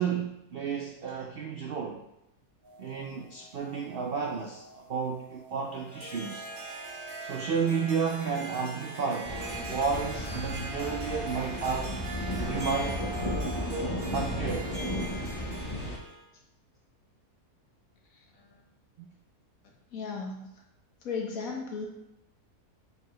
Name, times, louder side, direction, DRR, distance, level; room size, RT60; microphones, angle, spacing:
voice 1, 0.0-2.0 2.8-6.5 7.2-9.4 9.7-12.0 12.4-13.0 14.1-14.8 19.0-19.1, right 6 dB, 80° right, 1 dB, 0.5 m, -32 dB
sound 1, 2.6-13.5, right 3 dB, 65° right, 1.6 m, -46 dB
Harp, 5.7-16.2, right 2 dB, 50° right, 1.2 m, -42 dB
sound 2, 9.2-16.0, left 1 dB, 25° left, 0.6 m, -34 dB
voice 2, 18.1-18.6 19.9-20.5 21.0-21.9, left 5 dB, 60° left, -1 dB, 1.5 m, -36 dB
6.8 x 4.6 x 3.1 m, 0.85 s
omnidirectional pair, 1.7 m